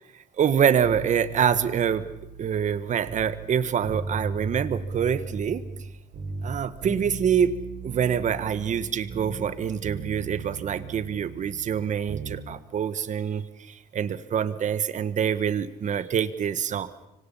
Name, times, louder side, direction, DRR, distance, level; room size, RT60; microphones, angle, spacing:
voice 1, 0.4-2.0 2.4-5.6 6.4-7.5 7.8-16.9, right 8 dB, 45° right, 13 dB, 1.4 m, -25 dB
sound 1, 0.8-3.5 3.8-5.9 6.1-9.6 9.8-12.4 12.7-12.8, right 4 dB, 65° right, 7.1 m, -37 dB
25.5 x 25.0 x 5.7 m, 0.90 s
cardioid pair, 110°, 17 cm